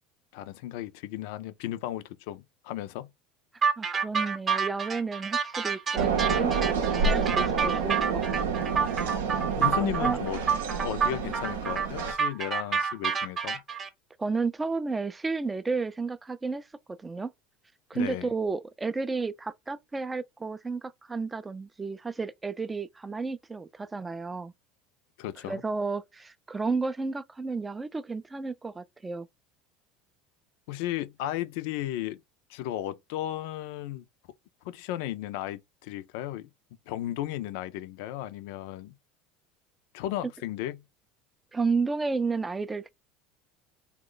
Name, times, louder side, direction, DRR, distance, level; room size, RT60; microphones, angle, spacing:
voice 1, 0.3-3.1 9.6-10.4 10.8-13.6 17.9-18.3 25.2-25.6 30.7-32.2 32.5-34.0 34.6-36.5 36.9-39.0 39.9-40.8, left 13 dB, 70° left, 0.3 m, -35 dB
sound 1, 3.6-13.9, right 6 dB, 35° right, 0.8 m, -28 dB
voice 2, 3.8-8.6 9.8-10.2 14.2-17.3 17.9-24.5 25.4-29.3 41.5-42.9, right 4 dB, 15° right, 0.3 m, -32 dB
sound 2, 6.0-12.1, right 5 dB, 85° right, 0.6 m, -29 dB
3.0 x 2.1 x 3.8 m
hypercardioid pair, 80°, 0 cm